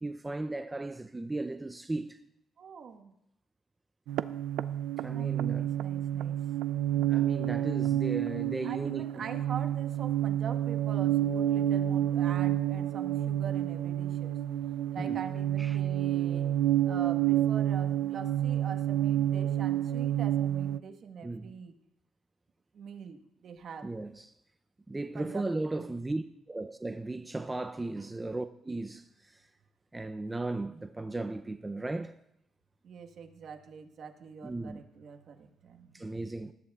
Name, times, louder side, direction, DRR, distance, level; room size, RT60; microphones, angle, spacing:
voice 1, 0.0-2.2 5.0-6.0 6.9-9.3 15.0-15.2 15.6-15.8 21.2-21.5 23.8-24.3 24.9-29.5 29.9-32.2 34.4-34.8 35.9-36.5, right 2 dB, 15° right, 0.5 m, -36 dB
voice 2, 2.6-3.1 5.1-5.3 5.5-6.4 8.6-14.4 14.9-16.6 16.8-21.7 22.7-23.9 25.1-25.9 28.0-28.1 32.8-36.1, right 6 dB, 60° right, 1.3 m, -44 dB
sound 1, 4.1-20.8, right 12 dB, 90° right, 0.4 m, -29 dB
19.5 x 14.0 x 2.4 m
cardioid pair, 90°, 0 cm